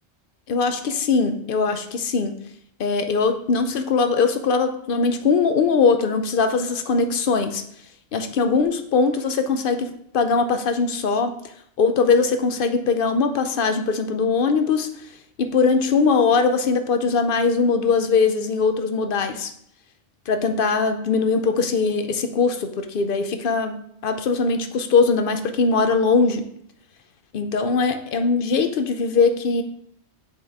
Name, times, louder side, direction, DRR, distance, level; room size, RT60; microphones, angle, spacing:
voice 1, 0.5-2.3 2.8-7.6 8.1-11.3 11.8-14.9 15.4-19.5 20.3-26.4 27.3-29.6, left 4 dB, 60° left, 7 dB, 0.7 m, -21 dB
7.7 x 3.6 x 3.4 m, 0.69 s
omnidirectional pair, 1.1 m